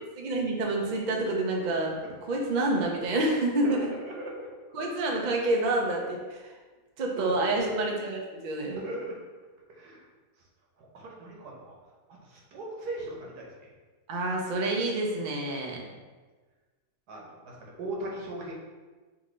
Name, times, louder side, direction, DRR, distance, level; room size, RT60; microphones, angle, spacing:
voice 1, 0.2-2.0 2.3-3.9 4.7-6.4 7.0-8.8 14.1-15.8, right 2 dB, 50° right, 0 dB, 0.5 m, -28 dB
voice 2, 3.6-4.5 7.2-7.8 8.7-9.2 9.7-10.0 10.8-11.8 12.1-13.7 15.6-16.0 17.1-18.5, right 1 dB, 90° right, -2 dB, 1.5 m, -38 dB
5.9 x 2.7 x 3.1 m, 1.3 s
omnidirectional pair, 1.6 m